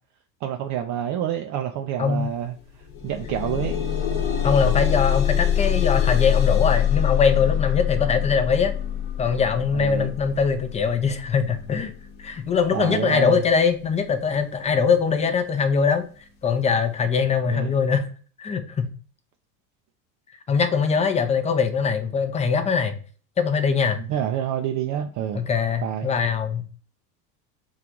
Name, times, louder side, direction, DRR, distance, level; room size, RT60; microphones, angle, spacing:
voice 1, 0.4-2.6 3.0-3.8 9.7-10.1 12.7-13.4 17.5-17.8 24.0-25.4 25.8-26.1, right 10 dB, 40° right, 5 dB, 0.4 m, -28 dB
sound 1, 2.1-2.2 2.6-13.6 14.4-14.5 15.0-15.1, left 9 dB, 55° left, 1.0 m, -25 dB
voice 2, 4.4-8.7 9.2-11.9 12.2-16.1 16.4-18.1 18.4-18.9 20.5-22.9 23.4-24.0 25.3-26.6, left 6 dB, 15° left, 7 dB, 0.5 m, -22 dB
3.8 x 2.4 x 4.4 m, 0.41 s
hypercardioid pair, 95°, 44 cm